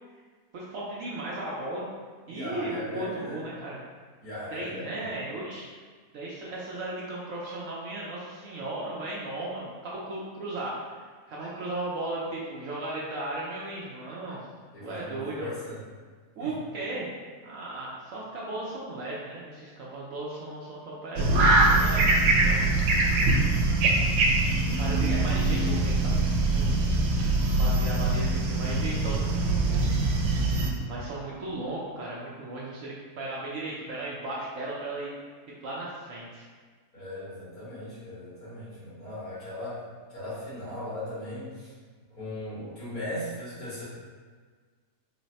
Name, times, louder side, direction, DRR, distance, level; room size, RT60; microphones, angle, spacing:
voice 1, 0.5-1.9 2.3-3.8 4.5-5.6 6.1-14.4 14.8-15.5 16.4-17.1 17.4-22.7 24.8-26.8 27.5-29.9 30.8-35.1 35.6-36.4, right 2 dB, 65° right, -5 dB, 0.9 m, -36 dB
voice 2, 2.3-3.4 4.2-5.1 14.7-15.8 16.4-16.5 26.9-27.3 30.8-31.1 36.9-39.8 40.1-41.7 42.1-43.8, left 1 dB, 65° left, -10 dB, 2.1 m, -38 dB
sound 1, 21.2-30.7, right 2 dB, 90° right, 1.2 m, -23 dB
4.0 x 2.1 x 4.0 m, 1.5 s
omnidirectional pair, 1.7 m